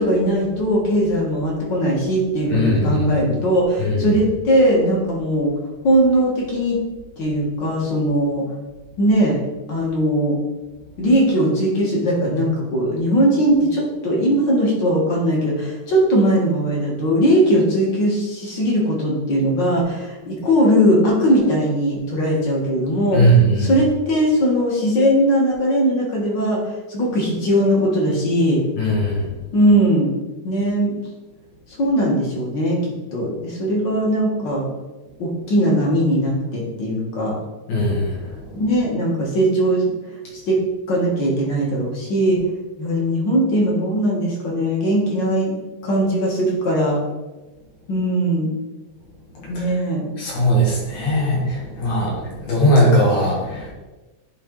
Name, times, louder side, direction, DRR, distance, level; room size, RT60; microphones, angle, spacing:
voice 1, 0.0-5.5 5.8-6.8 7.2-8.4 9.0-9.4 9.7-10.4 11.0-23.3 23.6-26.6 26.9-28.6 29.5-30.1 30.4-30.9 31.8-34.7 35.2-37.4 38.6-39.9 40.5-40.6 40.9-42.4 42.8-45.6 45.8-47.0 47.9-48.5 49.5-50.1, equal, 45° left, -3 dB, 1.9 m, -19 dB
voice 2, 2.5-3.0 3.8-4.1 23.1-23.7 28.8-29.2 37.7-38.4 49.3-49.5 50.2-53.7, equal, 75° left, -4 dB, 3.4 m, -19 dB
10.5 x 3.6 x 3.9 m, 1.1 s
omnidirectional pair, 3.4 m